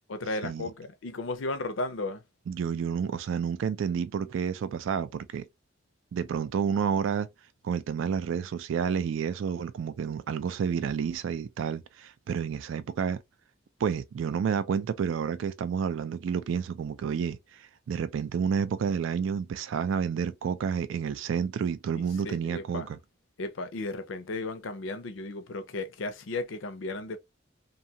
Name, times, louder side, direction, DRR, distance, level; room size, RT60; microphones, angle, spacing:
voice 1, 0.1-2.2 21.9-22.9 23.4-27.2, left 2 dB, 80° left, 0.6 m, -35 dB
voice 2, 2.5-5.5 6.1-7.3 7.6-13.2 13.8-23.0, right 7 dB, 75° right, 0.3 m, -30 dB
2.6 x 2.3 x 2.7 m
head